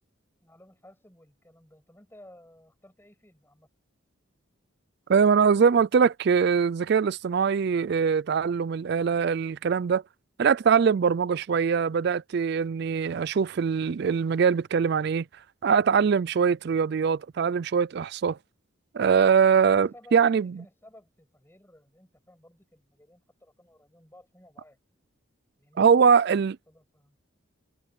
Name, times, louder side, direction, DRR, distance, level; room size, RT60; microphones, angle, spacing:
voice 1, 0.4-3.7 19.5-24.8 25.6-26.2 26.7-27.2, left 1 dB, 10° left, 6.8 m, -55 dB
voice 2, 5.1-10.0 10.4-15.2 15.6-18.4 18.9-20.5 25.8-26.6, right 6 dB, 55° right, 0.4 m, -22 dB
head